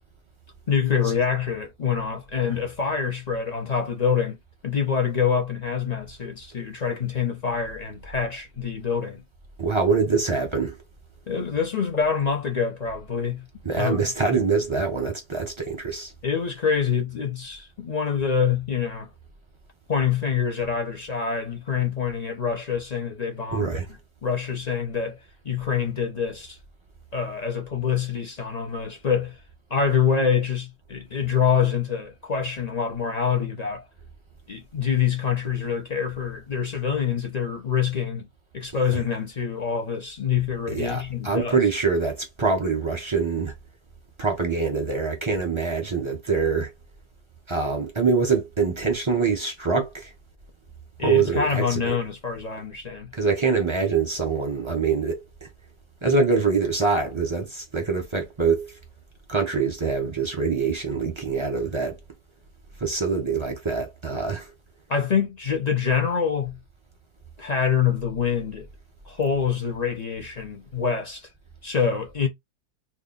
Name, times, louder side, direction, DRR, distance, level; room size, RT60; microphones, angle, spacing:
voice 1, 0.7-4.4 4.6-9.2 11.3-13.5 13.8-14.0 16.2-19.1 19.9-23.8 24.2-25.2 25.4-26.6 27.1-29.4 29.7-33.8 34.5-38.3 38.5-41.6 51.0-53.1 64.9-66.6 67.4-68.7 69.0-71.3 71.6-72.3, left 7 dB, 55° left, 0.4 m, -25 dB
voice 2, 9.6-10.8 13.6-16.1 23.5-23.9 40.7-43.5 44.2-46.7 47.5-50.1 51.0-51.9 53.1-55.2 56.0-58.8 59.3-62.0 62.8-64.5, right 4 dB, 25° right, 0.6 m, -24 dB
3.0 x 2.4 x 3.9 m
omnidirectional pair, 1.8 m